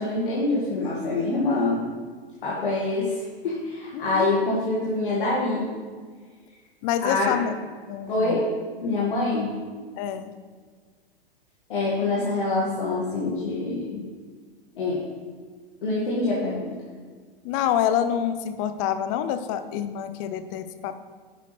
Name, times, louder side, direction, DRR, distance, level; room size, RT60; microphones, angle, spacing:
voice 1, 0.0-1.8 2.4-5.7 7.0-7.3 8.1-8.5 8.8-9.5 11.7-14.0 14.8-15.0 15.8-16.7, left 2 dB, 60° left, -6 dB, 2.4 m, -25 dB
voice 2, 3.9-4.3 6.8-7.5 7.9-8.4 10.0-10.3 17.4-21.0, left 9 dB, 35° left, 11 dB, 0.8 m, -27 dB
11.0 x 9.0 x 3.5 m, 1.5 s
figure-of-eight pair, 100°, 29 cm